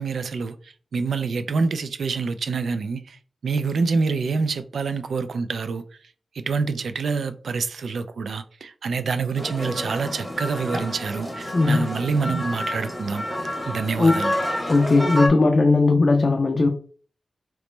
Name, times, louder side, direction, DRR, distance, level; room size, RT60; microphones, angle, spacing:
voice 1, 0.0-5.8 6.3-13.2 13.7-14.3, right 4 dB, 75° right, 0.3 m, -26 dB
sound 1, 9.3-15.3, left 1 dB, 10° right, 1.0 m, -29 dB
voice 2, 14.7-16.7, left 3 dB, 35° left, 0.3 m, -18 dB
3.0 x 3.0 x 3.2 m
wide cardioid pair, 175°, 0 cm